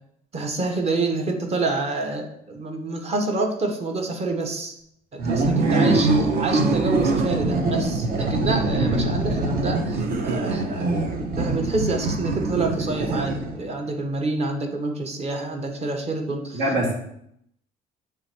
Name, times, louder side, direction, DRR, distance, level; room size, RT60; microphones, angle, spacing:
voice 1, 0.3-4.8 5.1-6.1 6.4-16.6, right 3 dB, 40° right, 4 dB, 1.1 m, -27 dB
sound 1, 5.2-13.7, right 2 dB, 60° right, 0.9 m, -24 dB
voice 2, 5.6-6.1 8.8-9.0 16.5-16.9, right 2 dB, 80° right, -2 dB, 2.1 m, -23 dB
6.8 x 3.4 x 4.4 m, 0.73 s
cardioid pair, 110°, 17 cm